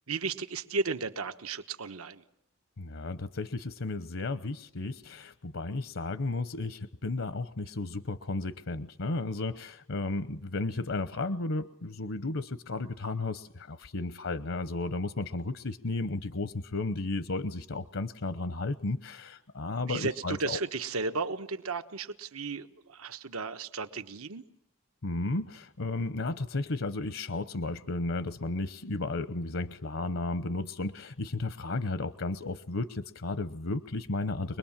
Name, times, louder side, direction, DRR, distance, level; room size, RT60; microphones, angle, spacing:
voice 1, 0.1-2.2 19.9-24.4, right 4 dB, 90° right, 9 dB, 1.3 m, -34 dB
voice 2, 2.8-20.6 25.0-34.6, left 2 dB, 70° left, 12 dB, 0.9 m, -33 dB
25.0 x 21.0 x 7.4 m, 0.78 s
head